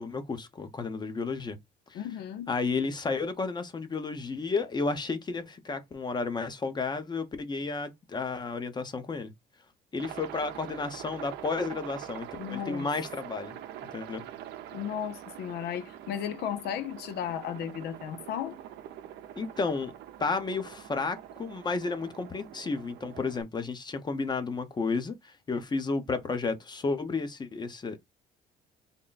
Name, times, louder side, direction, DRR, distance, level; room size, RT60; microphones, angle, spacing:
voice 1, 0.0-1.6 1.9-2.0 2.5-9.3 9.9-13.6 13.9-14.2 19.4-19.9 20.2-28.0, left 4 dB, 25° left, 0.8 m, -32 dB
voice 2, 1.9-2.5 12.4-12.9 14.7-18.6, left 9 dB, 70° left, 0.6 m, -35 dB
Aircraft, 10.0-23.4, right 11 dB, 80° right, 0.6 m, -44 dB
3.7 x 2.2 x 4.0 m
cardioid pair, 110°, 17 cm